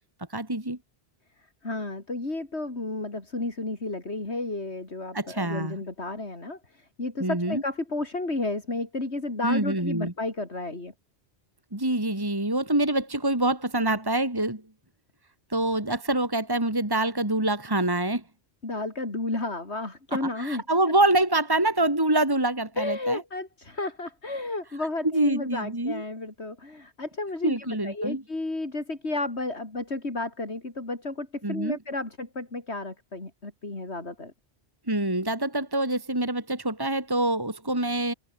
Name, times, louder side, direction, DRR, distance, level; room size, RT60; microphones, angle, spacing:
voice 1, 0.3-0.8 5.1-5.8 7.2-7.6 9.4-10.1 11.7-14.6 15.5-18.2 20.4-23.2 25.1-26.0 27.4-28.2 31.4-31.8 34.9-38.1, right 1 dB, 20° right, 2.8 m, -25 dB
voice 2, 1.6-10.9 18.6-20.6 22.8-34.3, left 2 dB, 75° left, 4.5 m, -32 dB
omnidirectional pair, 1.1 m